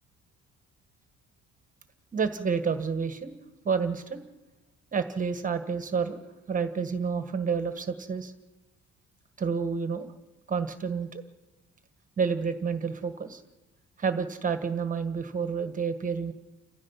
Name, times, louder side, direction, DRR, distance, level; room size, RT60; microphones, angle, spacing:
voice 1, 2.1-3.4 3.6-4.2 4.9-6.2 6.5-8.3 9.4-10.1 10.5-11.2 12.2-13.4 14.0-16.3, right 6 dB, 25° right, 8 dB, 1.4 m, -29 dB
29.5 x 16.0 x 5.7 m, 1.1 s
cardioid pair, 160°, 30 cm